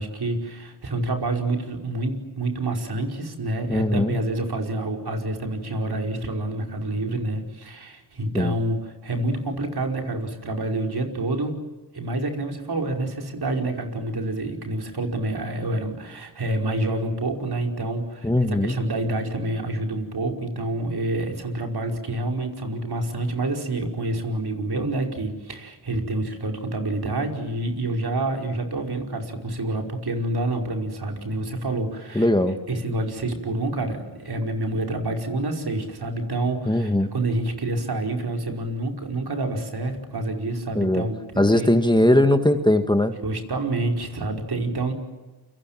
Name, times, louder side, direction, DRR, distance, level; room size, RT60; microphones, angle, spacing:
voice 1, 0.0-11.6 11.9-32.3 32.7-41.7 43.2-44.9, right 2 dB, 55° right, 3 dB, 5.2 m, -28 dB
voice 2, 3.7-4.2 8.3-8.5 18.2-18.8 32.2-32.6 36.7-37.1 40.8-41.1 41.4-43.1, left 1 dB, 10° left, 7 dB, 1.8 m, -19 dB
28.5 x 25.0 x 7.6 m, 1.2 s
cardioid pair, 70°, 46 cm